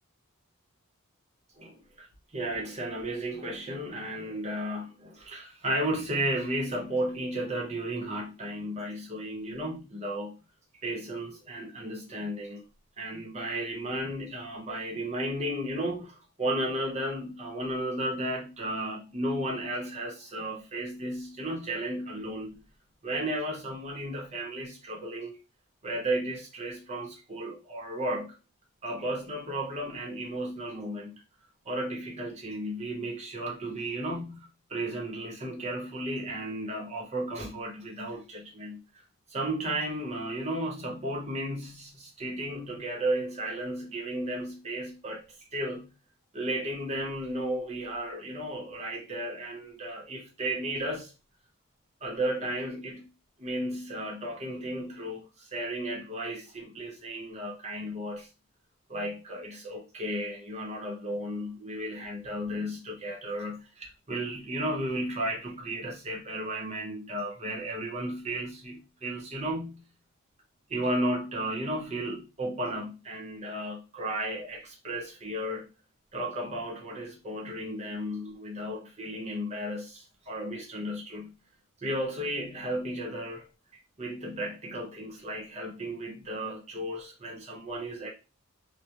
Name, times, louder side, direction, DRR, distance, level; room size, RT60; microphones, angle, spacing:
voice 1, 1.6-2.1 2.3-10.4 10.8-12.6 13.0-22.6 23.0-25.4 25.8-28.4 28.8-31.2 31.6-38.8 39.3-45.9 46.3-51.1 52.0-53.1 53.4-58.3 58.9-69.8 70.7-75.7 76.1-81.3 81.8-83.5 84.0-88.1, right 1 dB, 30° right, 0.8 m, -34 dB
2.3 x 2.1 x 2.8 m
head